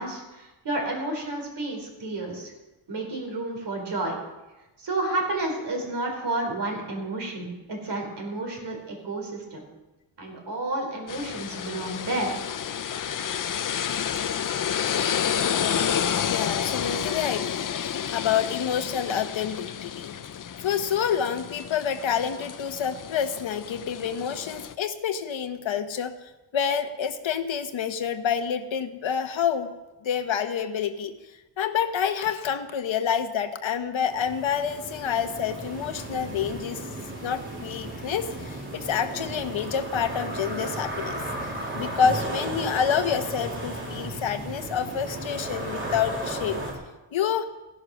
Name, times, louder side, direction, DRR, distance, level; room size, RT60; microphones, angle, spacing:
voice 1, 0.0-2.5 2.9-4.1 4.8-9.6 10.2-12.4, right 2 dB, 60° right, 2 dB, 3.9 m, -31 dB
sound 1, 11.1-24.7, left 8 dB, 45° left, 0.6 m, -30 dB
voice 2, 16.3-20.1 20.6-29.7 30.0-31.1 31.6-36.8 37.2-41.2 41.7-46.6 47.1-47.5, left 8 dB, 75° left, 8 dB, 1.2 m, -28 dB
sound 2, 34.1-46.7, right 1 dB, 25° right, 3.4 m, -35 dB
16.0 x 11.0 x 6.2 m, 1.1 s
wide cardioid pair, 175°, 47 cm